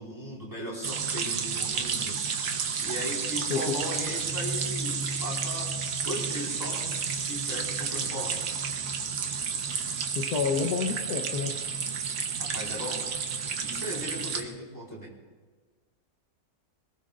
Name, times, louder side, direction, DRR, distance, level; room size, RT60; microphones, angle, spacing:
voice 1, 0.0-2.2 2.8-5.7 6.0-6.8 7.3-8.3 12.4-13.0 13.6-15.1, equal, 10° left, -4 dB, 4.3 m, -37 dB
sound 1, 0.8-14.4, right 6 dB, 80° right, 1.6 m, -31 dB
voice 2, 10.1-11.5, left 5 dB, 90° left, 1 dB, 1.6 m, -28 dB
25.5 x 20.0 x 2.5 m, 1.5 s
omnidirectional pair, 1.6 m